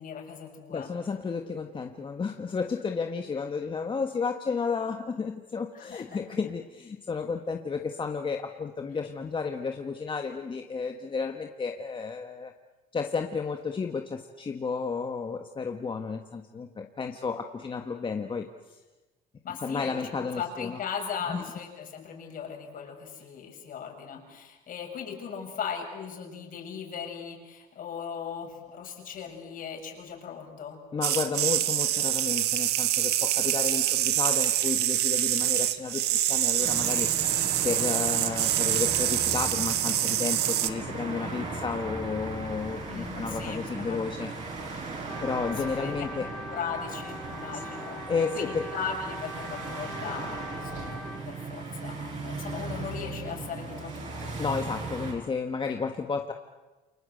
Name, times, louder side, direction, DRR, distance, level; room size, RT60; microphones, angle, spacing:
voice 1, 0.0-0.9 5.7-6.4 19.4-30.8 42.9-44.1 45.7-46.0 46.5-54.3, left 6 dB, 55° left, 2 dB, 6.9 m, -38 dB
voice 2, 0.7-12.5 12.9-18.8 19.6-20.8 21.3-21.4 30.9-37.1 37.6-44.3 45.2-46.3 48.1-48.7 54.4-56.3, left 5 dB, 30° left, 5 dB, 1.5 m, -32 dB
sound 1, 31.0-40.7, right 13 dB, 75° right, 1.5 m, -26 dB
sound 2, 36.6-55.1, right 3 dB, 45° right, 7.8 m, -37 dB
Trumpet, 45.1-51.3, equal, ahead, 1.8 m, -42 dB
29.0 x 23.5 x 8.0 m, 1.2 s
cardioid pair, 110°, 17 cm